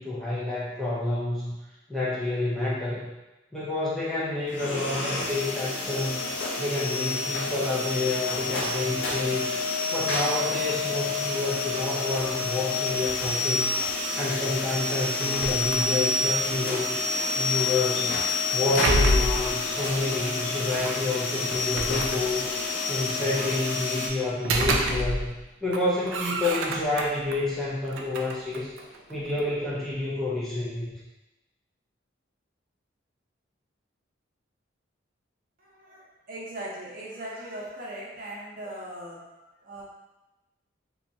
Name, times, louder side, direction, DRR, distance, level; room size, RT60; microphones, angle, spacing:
voice 1, 0.0-1.5 1.9-3.1 3.5-6.2 6.6-9.6 9.9-13.7 14.2-16.9 17.4-18.1 18.5-22.5 22.9-25.3 25.6-28.7 29.1-30.9, left 2 dB, ahead, -9 dB, 0.5 m, -29 dB
sound 1, 4.5-24.1, left 3 dB, 65° left, 0.4 m, -28 dB
voice 2, 6.3-6.6 14.8-15.8 17.1-17.8 18.0-18.1 18.4-18.6 20.1-20.4 35.6-39.8, right 1 dB, 45° right, -6 dB, 0.7 m, -41 dB
sound 2, 15.2-16.3 18.3-19.6 20.8-21.0 21.5-22.6 24.2-25.4 25.7-27.4 27.8-29.5, right 1 dB, 85° right, 0.3 m, -29 dB
2.8 x 2.2 x 2.6 m, 1.0 s
head